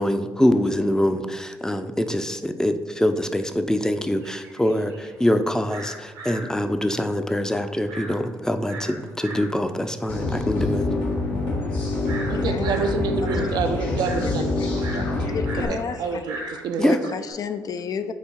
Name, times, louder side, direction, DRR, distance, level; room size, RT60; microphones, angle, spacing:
voice 1, 0.0-10.8 16.8-17.0, left 1 dB, 10° left, 8 dB, 0.6 m, -24 dB
sound 1, 4.1-17.3, right 1 dB, 85° right, 1.4 m, -39 dB
sound 2, 10.1-15.7, left 2 dB, 75° left, 1.5 m, -26 dB
voice 2, 12.3-15.4 15.7-17.0, right 5 dB, 65° right, 6 dB, 0.6 m, -28 dB
voice 3, 15.3-16.2 16.9-18.1, left 6 dB, 55° left, 10 dB, 0.5 m, -31 dB
8.1 x 2.8 x 4.6 m, 1.4 s
hypercardioid pair, 50°, 8 cm